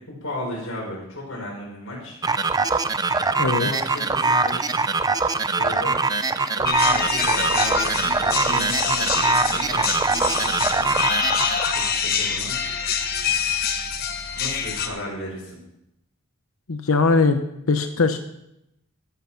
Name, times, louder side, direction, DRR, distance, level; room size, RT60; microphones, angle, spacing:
voice 1, 0.1-2.2 3.4-4.8 5.5-5.9 6.5-11.0 11.7-12.5 14.3-15.6, left 1 dB, 70° left, -3 dB, 5.6 m, -34 dB
sound 1, 2.2-12.0, right 3 dB, 20° right, 0.5 m, -23 dB
voice 2, 3.4-3.7 16.7-17.4 17.7-18.2, left 4 dB, 90° left, 7 dB, 0.9 m, -20 dB
sound 2, 6.6-14.9, left 7 dB, 45° left, 1.2 m, -25 dB
14.0 x 8.2 x 5.7 m, 0.83 s
head